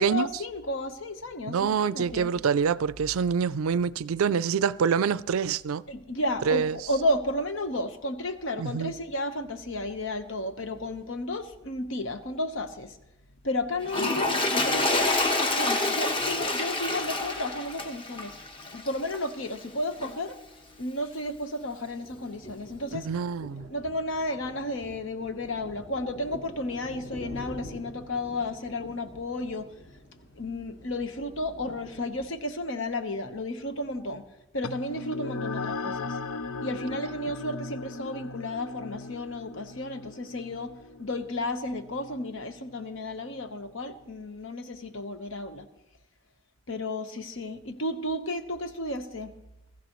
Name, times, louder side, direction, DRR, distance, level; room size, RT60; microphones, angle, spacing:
voice 1, 0.0-2.3 5.9-13.0 13.4-15.1 15.4-18.3 18.7-20.4 20.8-23.1 23.7-29.7 30.4-34.2 34.5-36.2 36.6-40.7 41.0-45.7 46.7-49.3, left 1 dB, 70° left, 1.2 m, -33 dB
voice 2, 1.5-5.8 6.5-6.8 8.6-8.9 22.9-23.7, right 6 dB, 85° right, 0.4 m, -26 dB
Toilet flush, 13.8-19.3 20.0-20.1, left 2 dB, 25° left, 1.2 m, -27 dB
sound 1, 21.6-32.3, equal, 55° left, 2.5 m, -46 dB
sound 2, 34.6-43.5, left 3 dB, 90° left, 0.6 m, -38 dB
23.0 x 14.0 x 3.1 m
head